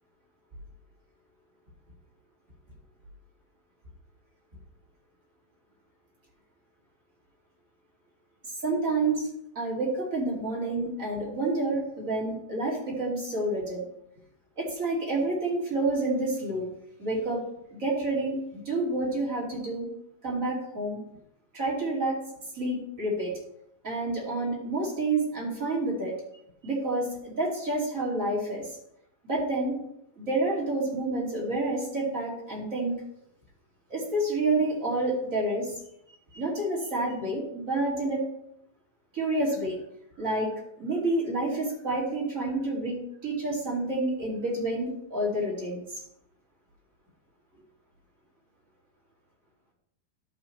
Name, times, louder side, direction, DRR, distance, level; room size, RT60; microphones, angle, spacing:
voice 1, 8.6-9.3 9.6-13.8 14.6-16.7 17.0-17.4 17.7-18.4 18.7-19.9 20.2-21.0 21.5-22.2 22.5-23.3 23.8-26.1 26.6-28.6 29.3-29.8 30.2-33.0 33.9-35.7 36.3-38.2 39.1-39.8 40.2-45.8, right 2 dB, 25° right, -4 dB, 2.2 m, -29 dB
12.5 x 6.1 x 3.2 m, 0.77 s
omnidirectional pair, 4.4 m